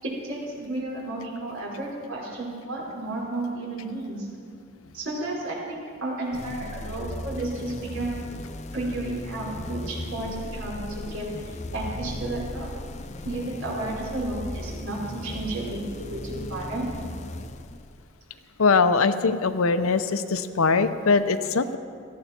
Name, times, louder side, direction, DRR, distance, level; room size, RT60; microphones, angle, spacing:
voice 1, 0.0-4.3 4.9-8.2 8.7-12.7 13.2-16.9, right 2 dB, 80° right, -5 dB, 4.9 m, -32 dB
sound 1, 6.3-18.3, left 1 dB, 35° left, 0.5 m, -37 dB
voice 2, 18.6-21.8, left 4 dB, 85° left, 11 dB, 0.7 m, -22 dB
18.0 x 15.0 x 4.4 m, 2.4 s
head